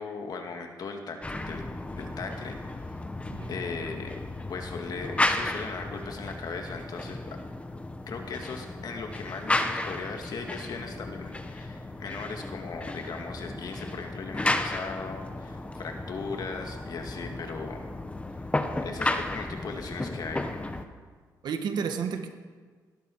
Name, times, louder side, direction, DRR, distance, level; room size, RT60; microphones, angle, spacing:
voice 1, 0.0-1.6 2.0-2.6 3.5-4.2 4.5-7.4 8.1-17.8 18.8-20.7, left 4 dB, 60° left, 4 dB, 2.1 m, -38 dB
sound 1, 1.2-20.9, left 2 dB, 15° left, 1.1 m, -33 dB
voice 2, 21.4-22.3, right 6 dB, 75° right, 6 dB, 1.5 m, -31 dB
18.5 x 12.5 x 4.8 m, 1.5 s
cardioid pair, 90°, 7 cm